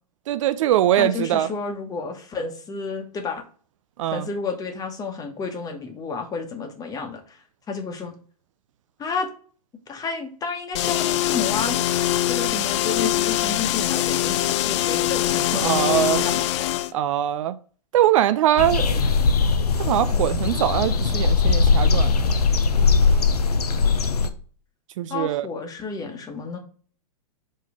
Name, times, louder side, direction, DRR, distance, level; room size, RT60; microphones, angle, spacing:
voice 1, 0.3-1.5 4.0-4.3 15.5-16.2 16.9-17.6 17.9-19.0 19.8-22.2 25.0-25.5, right 12 dB, 55° right, 0.5 m, -22 dB
voice 2, 1.0-3.4 4.1-7.4 7.7-8.1 9.0-9.3 9.9-11.8 12.3-14.4 14.6-16.4 20.1-20.3 25.1-26.6, left 4 dB, 20° left, 1.3 m, -31 dB
sound 1, 10.7-16.9, left 13 dB, 50° left, 0.4 m, -23 dB
sound 2, 18.6-24.3, left 4 dB, 85° left, 0.8 m, -20 dB
5.3 x 3.8 x 4.9 m
hypercardioid pair, 120°, 19 cm